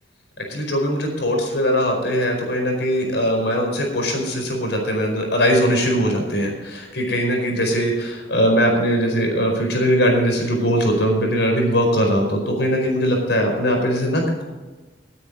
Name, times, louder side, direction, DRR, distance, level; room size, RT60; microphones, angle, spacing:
voice 1, 0.4-14.4, equal, 65° left, 2 dB, 4.7 m, -20 dB
19.5 x 9.5 x 4.1 m, 1.2 s
head